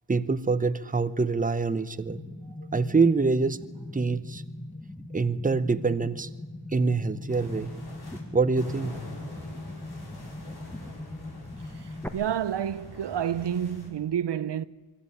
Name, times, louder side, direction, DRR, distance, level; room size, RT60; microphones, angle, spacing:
voice 1, 0.1-2.2 2.7-3.6 3.9-4.4 5.1-6.3 6.7-7.7 8.3-9.0, right 4 dB, 20° right, 0.9 m, -25 dB
sound 1, 2.1-12.1, left 1 dB, 5° left, 1.6 m, -41 dB
sound 2, 7.3-8.2 8.6-13.9, left 2 dB, 60° left, 6.1 m, -44 dB
voice 2, 11.8-14.6, right 9 dB, 70° right, 0.7 m, -29 dB
24.5 x 13.5 x 9.1 m
wide cardioid pair, 95°, 43 cm